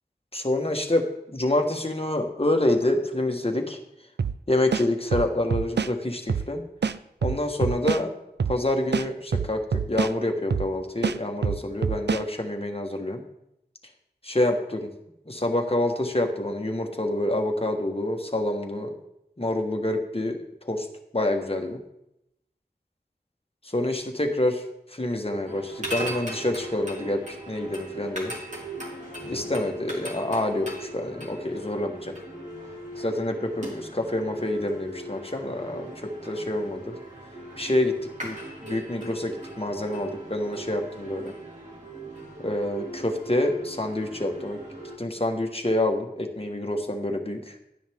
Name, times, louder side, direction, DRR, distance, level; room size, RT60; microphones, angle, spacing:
voice 1, 0.3-3.8 4.5-6.6 7.2-8.1 8.5-13.2 14.2-14.9 15.3-18.9 19.4-20.4 20.6-20.9 21.1-21.8 23.6-24.6 24.9-27.2 27.5-28.3 29.3-32.1 33.0-37.0 37.6-37.9 38.2-38.3 38.7-41.3 42.4-44.6 45.0-47.6, left 1 dB, 35° left, 2 dB, 1.5 m, -27 dB
sound 1, 4.2-4.4 4.7-5.9 6.3-6.5 6.8-8.0 8.4-8.6 8.9-10.1 10.5-10.7 11.0-12.2, right 6 dB, 85° right, 0.4 m, -26 dB
sound 2, 25.5-45.0, right 1 dB, 45° right, 3.2 m, -39 dB
12.0 x 10.0 x 3.6 m, 0.83 s
wide cardioid pair, 40°, 17 cm